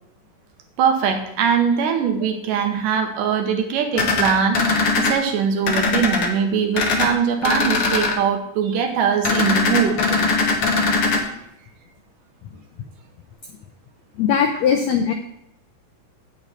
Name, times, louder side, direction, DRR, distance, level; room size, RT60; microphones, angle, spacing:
voice 1, 0.8-10.0, right 7 dB, 75° right, 5 dB, 2.4 m, -21 dB
sound 1, 3.9-5.1 5.6-6.3 6.7-7.1 7.4-8.1 9.2-11.2, left 3 dB, 60° left, 1.4 m, -20 dB
voice 2, 14.2-15.1, left 7 dB, 85° left, 5 dB, 1.5 m, -19 dB
8.6 x 7.9 x 4.2 m, 0.79 s
omnidirectional pair, 4.0 m